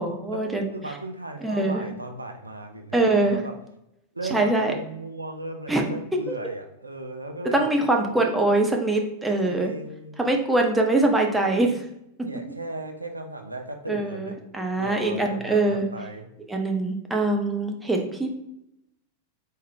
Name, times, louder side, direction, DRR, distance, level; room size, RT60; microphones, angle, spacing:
voice 1, 0.0-0.6 1.4-1.8 2.9-3.4 4.3-4.7 5.7-5.9 6.3-6.4 7.5-9.7 10.2-11.8 13.9-15.9 16.5-18.3, right 2 dB, 5° right, 2 dB, 0.6 m, -23 dB
voice 2, 0.7-3.5 4.1-7.7 8.1-8.2 9.4-10.3 12.2-14.3 14.8-16.3, right 2 dB, 85° right, 4 dB, 0.4 m, -36 dB
3.5 x 2.7 x 3.6 m, 0.83 s
figure-of-eight pair, 90°, 0 cm